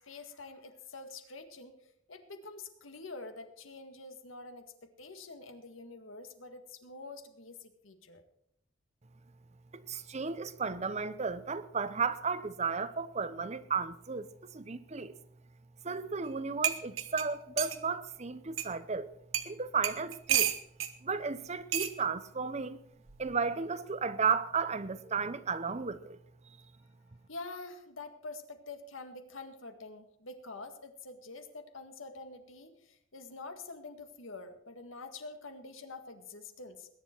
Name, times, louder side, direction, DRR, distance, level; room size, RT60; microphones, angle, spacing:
voice 1, 0.0-1.7 2.1-4.6 5.0-8.2 27.3-36.9, left 3 dB, 80° left, 1.9 m, -46 dB
voice 2, 9.7-15.2 15.8-19.1 19.4-20.5 21.0-22.8 23.2-26.2, right 5 dB, 35° right, 0.8 m, -34 dB
sound 1, 16.3-16.4 16.6-17.8 18.6-18.7 19.3-19.5 19.8-20.9 21.7-21.9 23.1-23.3, right 10 dB, 85° right, 1.2 m, -31 dB
21.0 x 10.5 x 4.5 m
head